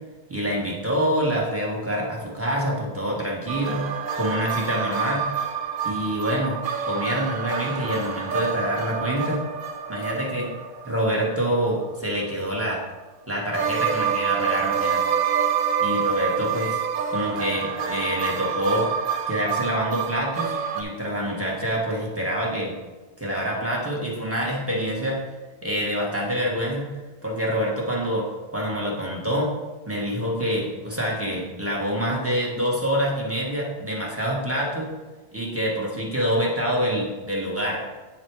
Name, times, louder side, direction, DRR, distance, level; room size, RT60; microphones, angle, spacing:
voice 1, 0.3-3.9 4.1-5.3 5.8-9.4 9.9-10.5 10.8-12.8 13.3-15.0 15.8-16.8 17.1-18.9 19.3-22.7 23.2-25.2 25.6-26.9 27.2-28.3 28.5-29.5 29.9-34.9 35.3-37.8, equal, 15° right, -3 dB, 1.5 m, -26 dB
sound 1, 3.5-12.1 13.5-20.8, right 7 dB, 60° right, 0.8 m, -27 dB
9.0 x 4.2 x 4.7 m, 1.3 s
omnidirectional pair, 1.1 m